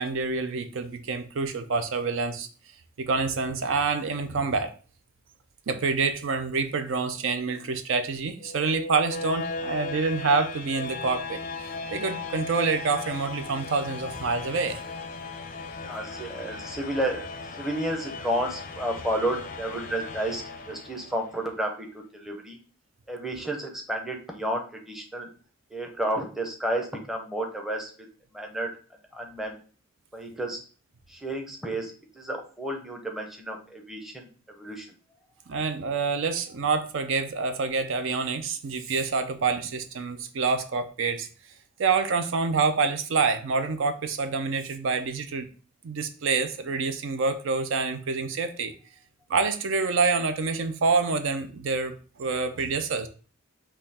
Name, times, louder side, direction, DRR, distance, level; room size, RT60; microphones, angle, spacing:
voice 1, 0.0-2.5 3.0-4.7 5.7-14.8 35.5-41.3 41.8-45.5 45.8-48.7 49.3-53.1, right 4 dB, 65° right, 9 dB, 0.5 m, -27 dB
sound 1, 8.4-21.4, left 3 dB, 40° left, 0.4 m, -37 dB
voice 2, 15.8-22.6 23.1-25.3 25.7-28.1 28.3-28.7 29.1-29.6 30.1-30.6 31.1-34.3 34.6-34.9, right 1 dB, ahead, 1 dB, 0.7 m, -31 dB
5.4 x 2.3 x 4.1 m, 0.39 s
head